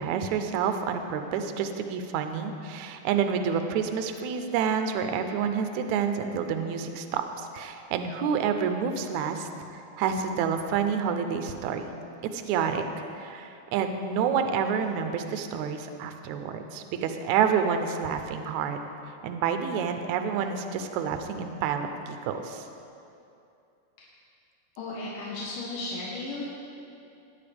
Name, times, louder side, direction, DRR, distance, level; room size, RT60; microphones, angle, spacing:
voice 1, 0.0-11.9 12.3-12.8 13.1-18.8 19.2-22.7, right 7 dB, 80° right, 6 dB, 1.7 m, -28 dB
voice 2, 24.8-26.5, left 2 dB, 65° left, -6 dB, 2.7 m, -35 dB
18.5 x 9.6 x 3.5 m, 2.7 s
omnidirectional pair, 4.1 m